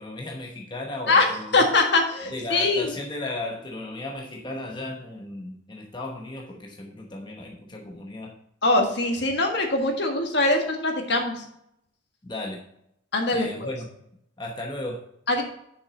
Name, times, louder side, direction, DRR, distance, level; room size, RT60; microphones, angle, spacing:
voice 1, 0.0-1.7 2.3-8.3 12.2-12.6 13.3-14.0 14.4-15.0, left 2 dB, 25° left, 0 dB, 0.9 m, -35 dB
voice 2, 1.5-2.9 8.6-11.5 13.1-13.7 15.3-15.4, left 2 dB, 55° left, 3 dB, 1.6 m, -22 dB
7.2 x 6.0 x 5.1 m, 0.75 s
head